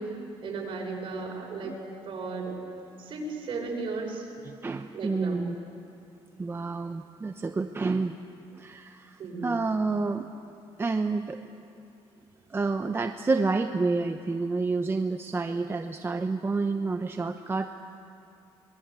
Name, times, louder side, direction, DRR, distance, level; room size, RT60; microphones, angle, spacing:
voice 1, 0.0-1.7 2.0-2.6 3.0-4.2 4.9-5.4 9.2-9.6, right 3 dB, 55° right, 0 dB, 6.2 m, -35 dB
voice 2, 4.5-5.6 6.4-8.1 8.5-10.3 10.8-11.4 12.5-17.7, right 3 dB, 20° right, 6 dB, 0.8 m, -29 dB
25.5 x 21.0 x 8.4 m, 2.5 s
cardioid pair, 110°, 11 cm